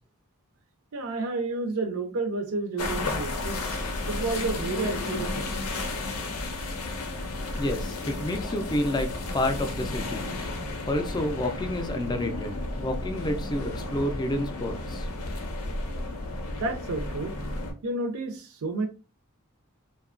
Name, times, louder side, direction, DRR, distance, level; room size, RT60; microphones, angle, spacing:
voice 1, 0.9-5.6 16.5-17.3 17.8-18.9, right 3 dB, 70° right, 0.5 m, -31 dB
sound 1, 2.8-17.7, left 2 dB, 80° left, 0.6 m, -33 dB
voice 2, 7.6-10.3 10.9-15.1, left 1 dB, 20° left, 0.4 m, -29 dB
2.7 x 2.2 x 2.4 m
head